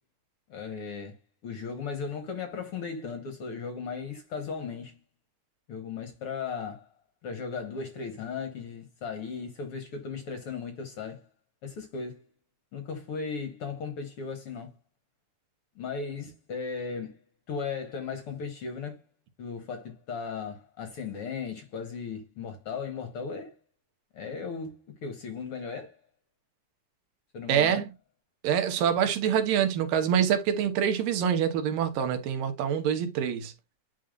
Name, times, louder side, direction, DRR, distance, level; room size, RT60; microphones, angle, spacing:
voice 1, 0.5-1.2 1.4-5.0 5.7-6.9 7.2-11.2 11.6-12.2 12.7-14.7 15.8-17.2 17.5-19.0 19.4-23.6 24.1-26.0 27.3-27.9, left 5 dB, 65° left, 1.4 m, -36 dB
voice 2, 27.5-27.9 28.4-33.5, right 8 dB, 75° right, 2.7 m, -25 dB
10.0 x 3.8 x 2.4 m
omnidirectional pair, 4.0 m